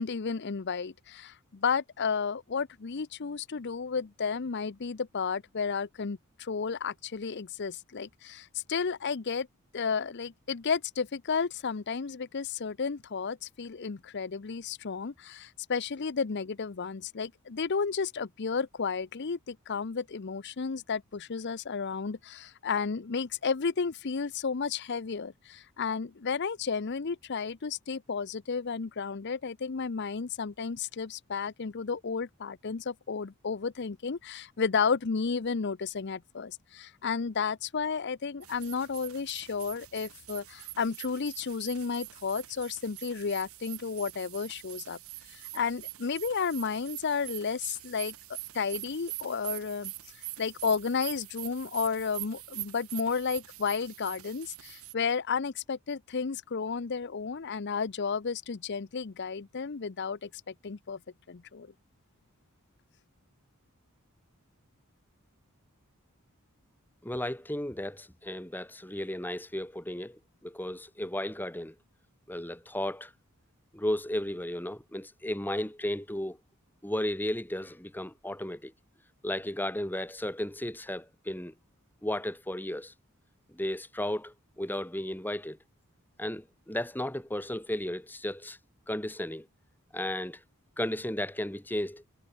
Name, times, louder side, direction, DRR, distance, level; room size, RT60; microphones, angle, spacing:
voice 1, 0.0-9.5 9.7-45.0 45.3-48.1 48.5-49.9 50.4-61.0 61.3-61.7, left 5 dB, 50° left, 0.6 m, -32 dB
sound 1, 38.4-54.9, right 17 dB, 75° right, 2.6 m, -44 dB
voice 2, 67.0-71.7 72.3-73.1 73.7-76.4 76.8-78.7 79.2-81.5 82.0-82.9 83.5-85.6 86.2-88.6 88.9-89.5 89.9-90.4 90.8-92.0, left 1 dB, 10° left, 2.0 m, -34 dB
head